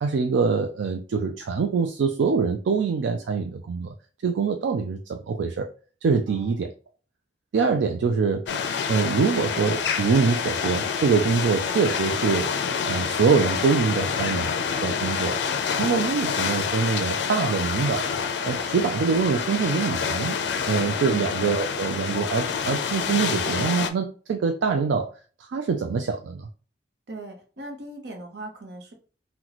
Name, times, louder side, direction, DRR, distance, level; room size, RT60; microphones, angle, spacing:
voice 1, 0.0-3.9 4.2-5.7 6.0-6.7 7.5-8.5 8.9-12.5 12.9-14.5 14.8-15.4 15.8-18.1 18.4-20.4 20.7-25.1 25.5-26.5, right 5 dB, 85° right, 4 dB, 0.3 m, -24 dB
voice 2, 6.3-6.7 21.1-21.4 27.1-28.9, right 2 dB, 65° right, 3 dB, 0.8 m, -39 dB
sound 1, 8.5-23.9, left 6 dB, 75° left, 0.4 m, -27 dB
2.9 x 2.2 x 3.9 m, 0.39 s
head